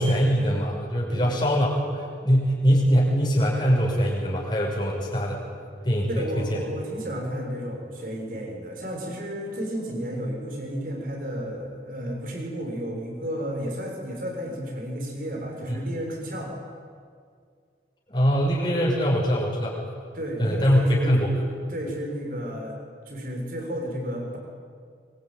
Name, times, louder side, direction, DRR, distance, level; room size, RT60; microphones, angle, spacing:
voice 1, 0.0-1.8 2.2-5.4 5.8-6.6 15.7-15.8 18.1-19.7 20.4-21.3, equal, 25° left, -4 dB, 5.9 m, -22 dB
voice 2, 6.1-16.5 20.1-21.2 21.7-22.8 23.1-24.4, equal, 50° right, 1 dB, 6.6 m, -32 dB
23.5 x 23.5 x 9.3 m, 2.1 s
head